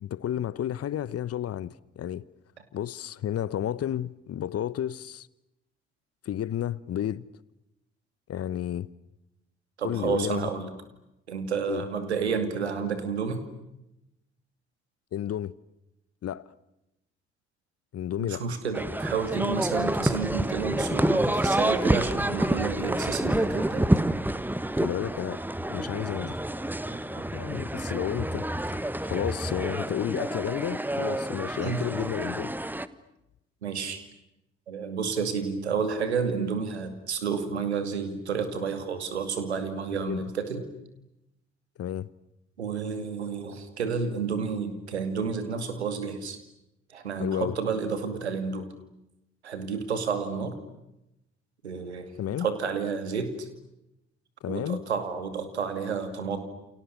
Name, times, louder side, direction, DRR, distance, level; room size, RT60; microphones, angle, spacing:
voice 1, 0.0-2.2 2.7-5.3 6.2-7.3 8.3-8.9 9.8-10.5 11.7-11.8 15.1-15.5 16.2-16.5 17.9-18.4 24.7-26.4 27.3-32.5 39.9-40.3 41.8-42.1 47.2-47.6 52.2-52.5 54.4-54.8, left 11 dB, 45° left, 1.1 m, -32 dB
voice 2, 9.8-10.7 11.3-13.4 18.2-23.9 26.9-27.2 31.6-31.8 33.6-34.0 34.7-40.7 42.6-46.4 46.9-48.7 49.4-50.5 51.6-53.5 54.5-56.4, right 5 dB, 85° right, 2.4 m, -30 dB
sound 1, 18.7-32.9, right 1 dB, 5° right, 1.4 m, -28 dB
29.5 x 29.5 x 6.8 m
figure-of-eight pair, 45°, 32 cm